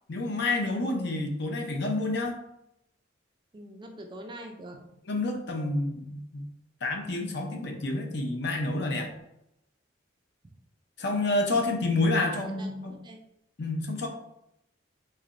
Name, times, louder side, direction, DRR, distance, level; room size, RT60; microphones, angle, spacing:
voice 1, 0.1-2.4 5.1-6.5 6.8-9.1 11.0-12.9 13.6-14.1, left 2 dB, 60° left, 3 dB, 0.6 m, -29 dB
voice 2, 3.5-4.8 12.5-12.7 13.0-13.2, right 1 dB, 25° right, 3 dB, 0.4 m, -44 dB
3.8 x 3.2 x 2.5 m, 0.81 s
head